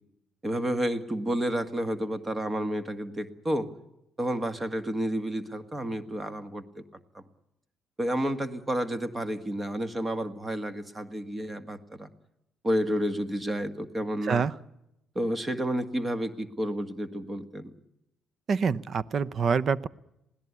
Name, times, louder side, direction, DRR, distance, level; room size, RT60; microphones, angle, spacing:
voice 1, 0.4-3.7 4.2-6.8 7.1-7.2 8.0-12.1 12.6-14.4 15.2-17.7, equal, 25° right, 11 dB, 1.9 m, -30 dB
voice 2, 14.2-14.5 18.5-19.9, right 5 dB, 50° right, 19 dB, 0.8 m, -26 dB
21.0 x 17.0 x 9.8 m, 0.85 s
supercardioid pair, 80°, 0 cm